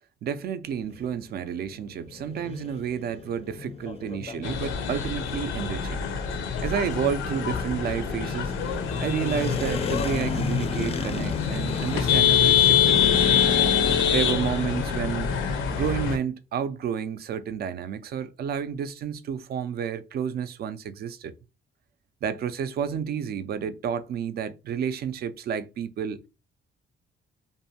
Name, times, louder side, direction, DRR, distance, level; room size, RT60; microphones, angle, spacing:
voice 1, 0.2-6.1 6.4-8.5 9.0-13.2 14.1-15.3 15.7-21.3 22.2-26.2, right 8 dB, 50° right, 0.4 m, -30 dB
sound 1, 0.6-15.9, left 4 dB, 30° left, 0.4 m, -33 dB
sound 2, 4.4-16.2, left 8 dB, 85° left, 0.5 m, -25 dB
2.6 x 2.1 x 2.7 m
cardioid pair, 90°, 20 cm